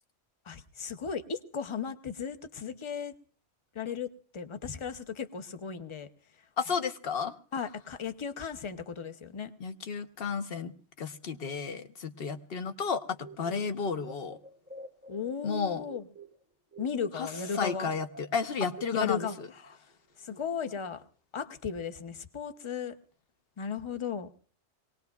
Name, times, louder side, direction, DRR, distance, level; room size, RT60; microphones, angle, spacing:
voice 1, 0.5-3.1 3.7-6.1 7.5-9.5 15.1-16.0 16.8-17.9 18.9-19.4 19.6-19.8 20.2-21.0 21.3-23.0 23.6-24.3, left 6 dB, 30° left, 9 dB, 0.7 m, -36 dB
voice 2, 6.6-7.4 9.6-10.7 11.0-14.4 15.4-15.8 17.1-19.5, left 5 dB, 55° left, 9 dB, 1.0 m, -32 dB
sound 1, 13.2-16.4 16.7-19.7, right 3 dB, 10° right, 0.6 m, -48 dB
23.5 x 19.0 x 2.3 m, 0.42 s
omnidirectional pair, 1.2 m